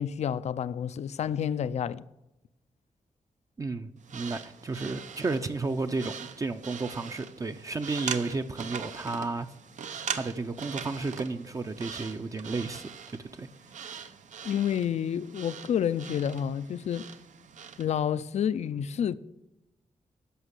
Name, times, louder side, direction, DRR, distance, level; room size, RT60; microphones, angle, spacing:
voice 1, 0.0-2.0 14.4-17.1 17.8-19.2, left 9 dB, 65° left, 0.4 m, -29 dB
voice 2, 3.6-9.5 10.1-13.5, right 3 dB, 25° right, 0.5 m, -33 dB
sound 1, 4.0-17.9, right 7 dB, 85° right, 0.8 m, -41 dB
11.0 x 6.6 x 8.1 m
wide cardioid pair, 145°, 12 cm